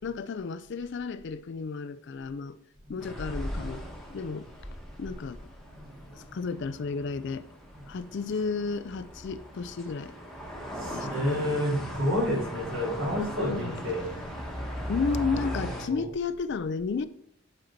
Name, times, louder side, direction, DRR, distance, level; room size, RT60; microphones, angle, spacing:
voice 1, 0.0-2.6 2.9-4.5 5.0-5.4 6.1-7.5 7.9-10.2 10.9-11.6 13.5-13.8 14.9-17.1, left 4 dB, 55° left, 0.4 m, -32 dB
sound 1, 3.0-15.9, equal, ahead, 1.1 m, -39 dB
voice 2, 6.1-6.4 10.5-14.1 14.7-16.0, equal, 65° right, 3.1 m, -31 dB
7.9 x 4.1 x 4.5 m
head